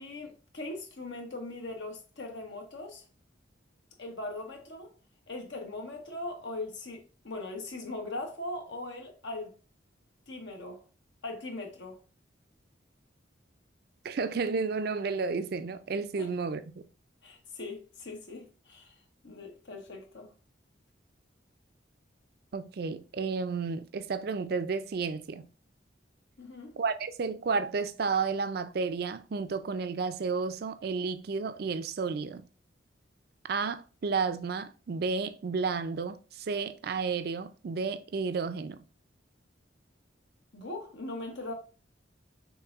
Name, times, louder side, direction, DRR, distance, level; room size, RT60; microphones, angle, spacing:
voice 1, 0.0-3.0 4.0-4.9 5.3-9.5 10.3-10.8 11.2-12.0 16.2-16.3 17.2-18.9 19.2-20.3 26.4-26.8 40.5-41.5, left 2 dB, 70° left, 1.1 m, -40 dB
voice 2, 14.0-16.8 22.5-25.5 26.8-32.5 33.4-38.8, right 4 dB, 55° right, 0.4 m, -32 dB
5.9 x 3.5 x 2.4 m
head